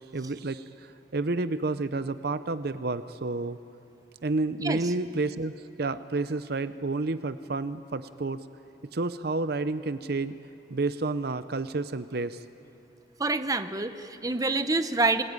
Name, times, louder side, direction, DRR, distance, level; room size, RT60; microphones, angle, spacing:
voice 1, 0.1-0.6 1.1-3.6 4.2-8.4 8.9-10.3 10.7-12.4, right 3 dB, 55° right, 12 dB, 0.6 m, -30 dB
voice 2, 4.6-4.9 13.2-15.2, right 3 dB, 20° right, 10 dB, 0.8 m, -27 dB
27.0 x 19.5 x 9.7 m, 2.8 s
head